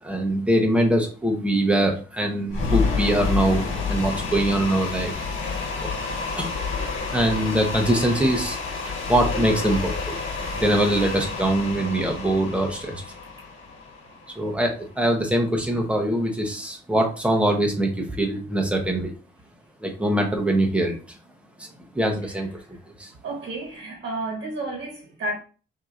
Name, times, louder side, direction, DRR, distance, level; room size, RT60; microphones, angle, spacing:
voice 1, 0.0-3.6 3.9-5.1 6.4-6.5 7.1-8.6 8.8-10.2 10.5-13.0 14.4-19.1 19.8-21.0 21.6-22.5 23.0-23.1, right 1 dB, 5° right, 0.9 m, -23 dB
sound 1, 2.5-14.6, left 4 dB, 80° left, 1.3 m, -29 dB
voice 2, 23.2-25.4, right 2 dB, 65° right, 1.3 m, -31 dB
6.0 x 2.8 x 2.5 m
wide cardioid pair, 150°, 20 cm